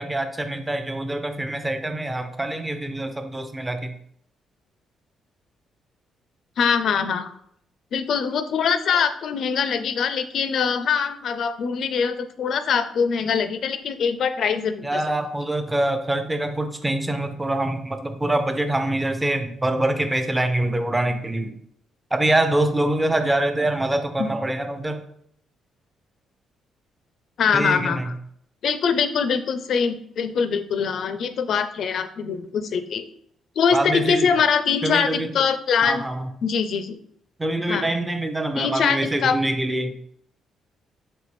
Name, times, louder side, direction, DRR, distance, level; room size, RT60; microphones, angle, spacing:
voice 1, 0.0-4.0 14.8-21.6 22.1-25.0 27.5-28.1 33.7-34.3 34.8-35.5 35.8-36.3 37.4-39.9, right 1 dB, 15° right, 7 dB, 0.6 m, -25 dB
voice 2, 6.6-7.3 7.9-15.0 24.2-24.3 27.4-28.1 28.6-33.0 33.6-36.0 36.4-37.0 37.7-37.9 38.6-39.4, left 6 dB, 65° left, 10 dB, 0.4 m, -23 dB
4.2 x 3.2 x 3.1 m, 0.69 s
cardioid pair, 90°, 0 cm